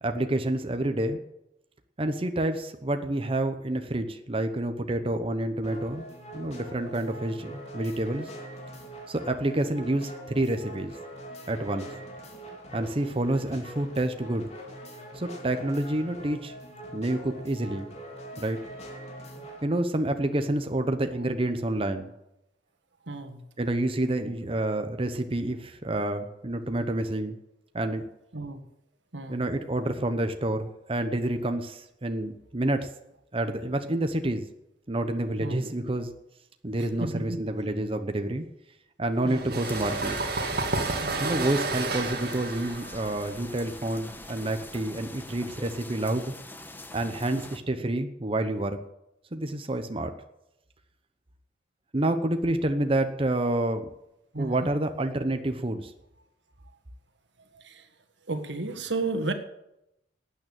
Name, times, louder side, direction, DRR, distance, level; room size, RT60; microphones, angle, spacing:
voice 1, 0.0-1.2 2.0-6.1 6.3-8.3 9.1-11.0 11.5-11.9 12.7-14.5 15.1-16.5 16.9-17.9 18.4-18.6 19.6-22.1 23.6-27.4 27.7-28.0 29.3-32.9 33.3-34.5 34.9-36.1 36.6-38.5 39.0-40.2 41.2-46.3 46.9-48.8 49.3-50.1 51.9-53.9 54.4-55.9, right 1 dB, 30° right, 7 dB, 0.9 m, -28 dB
sound 1, 5.6-19.7, right 1 dB, 40° left, 3.2 m, -43 dB
voice 2, 23.1-23.4 28.3-28.6 29.1-29.4 35.4-35.6 36.8-37.4 39.2-39.6 41.0-41.3 54.3-54.7 57.5-57.9 58.3-59.3, right 2 dB, 85° right, 8 dB, 1.7 m, -33 dB
sound 2, 39.3-44.7, right 3 dB, 60° right, 2.1 m, -31 dB
sound 3, 39.6-47.6, left 1 dB, 10° left, 1.2 m, -43 dB
12.5 x 9.2 x 8.9 m, 0.86 s
head